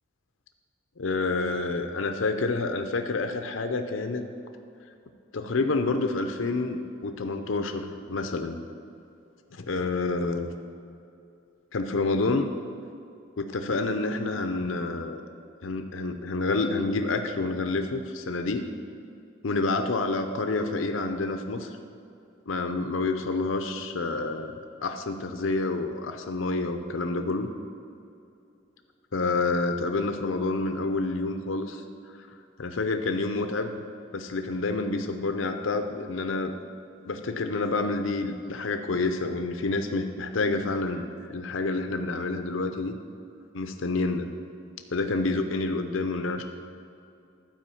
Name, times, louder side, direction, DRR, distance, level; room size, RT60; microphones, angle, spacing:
voice 1, 1.0-4.2 5.3-8.6 9.5-10.5 11.7-12.5 13.4-15.2 15.6-18.7 19.4-21.7 22.5-24.6 24.8-27.5 29.1-31.8 32.2-32.3 32.6-33.8 34.1-36.5 37.1-43.0 43.5-44.3 44.9-46.4, left 3 dB, 80° left, 6 dB, 0.6 m, -28 dB
12.0 x 5.0 x 7.0 m, 2.6 s
head